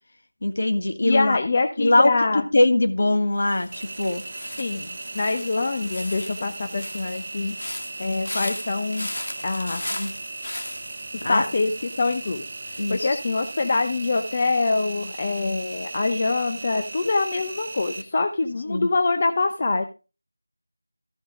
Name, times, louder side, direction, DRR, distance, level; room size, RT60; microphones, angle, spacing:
voice 1, 0.4-1.4 1.8-4.2 10.0-10.1 11.2-11.5 12.8-13.1 18.7-18.9, left 2 dB, 50° left, 8 dB, 1.6 m, -21 dB
voice 2, 1.0-2.4 4.6-4.9 5.1-7.6 8.0-9.1 9.4-10.0 11.1-19.8, left 3 dB, 30° left, 6 dB, 0.7 m, -25 dB
sound 1, 3.4-16.4 16.7-17.1, left 1 dB, 65° left, 2.2 m, -38 dB
Engine, 3.7-18.0, right 3 dB, 30° right, 1.0 m, -37 dB
14.0 x 5.3 x 5.0 m, 0.32 s
figure-of-eight pair, 175°, 0 cm